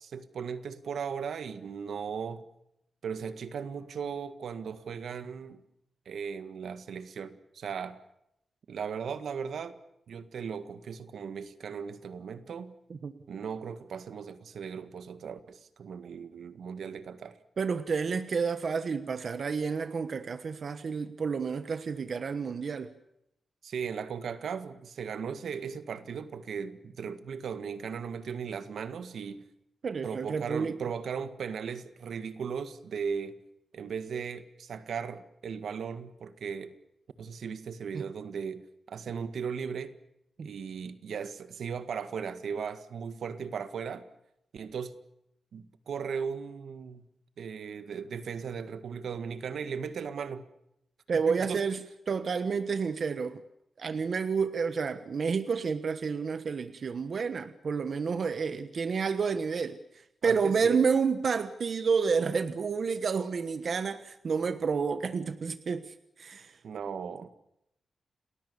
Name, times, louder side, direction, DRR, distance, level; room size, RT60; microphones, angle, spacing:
voice 1, 0.0-2.4 3.0-5.6 6.0-8.0 8.7-9.8 10.1-12.7 13.3-17.4 23.6-29.4 30.0-33.4 33.7-36.7 37.2-38.6 38.9-39.9 40.4-44.1 44.5-44.9 45.5-47.0 47.4-50.5 51.1-51.6 60.2-60.8 66.6-67.3, right 6 dB, 80° right, 1.8 m, -37 dB
voice 2, 17.6-22.9 29.8-30.8 37.9-38.0 40.4-40.5 51.1-53.4 53.8-66.6, right 5 dB, 50° right, 1.3 m, -30 dB
30.0 x 20.5 x 7.0 m
wide cardioid pair, 150°, 0 cm